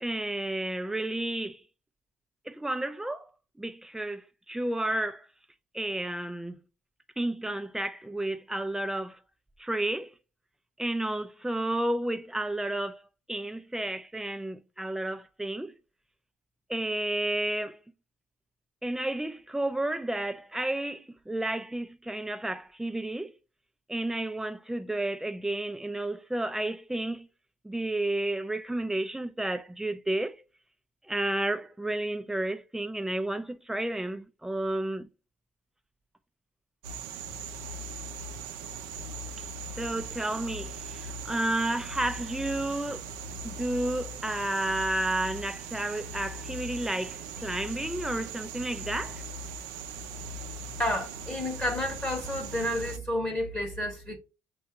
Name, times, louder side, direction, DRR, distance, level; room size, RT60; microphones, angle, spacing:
voice 1, 0.0-1.6 2.5-3.3 3.6-5.3 5.7-6.6 7.2-9.2 9.6-10.1 10.8-15.7 16.7-17.8 18.8-23.3 23.9-27.3 27.6-30.4 31.1-35.1 39.8-43.1 43.4-49.2, right 1 dB, 5° right, 0.4 m, -31 dB
sound 1, 36.8-53.0, right 3 dB, 90° right, 0.5 m, -39 dB
voice 2, 50.8-54.2, left 1 dB, 15° left, 1.1 m, -30 dB
6.7 x 2.4 x 2.8 m
supercardioid pair, 90°, 9 cm